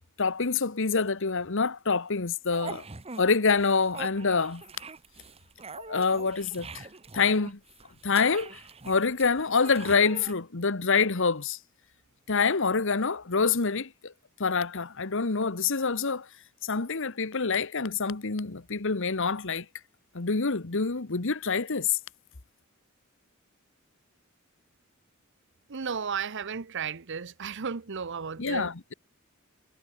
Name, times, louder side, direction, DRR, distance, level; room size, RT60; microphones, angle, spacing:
voice 1, 0.2-2.8 3.2-4.6 5.8-6.9 7.1-7.6 8.0-8.6 8.8-11.6 12.3-14.1 14.4-16.3 16.6-19.6 20.1-22.0 28.4-28.9, left 4 dB, 65° left, 1.3 m, -26 dB
sound 1, 2.5-3.2 3.5-10.3, right 4 dB, 30° right, 1.6 m, -43 dB
voice 2, 25.7-28.7, right 6 dB, 60° right, 0.8 m, -34 dB
head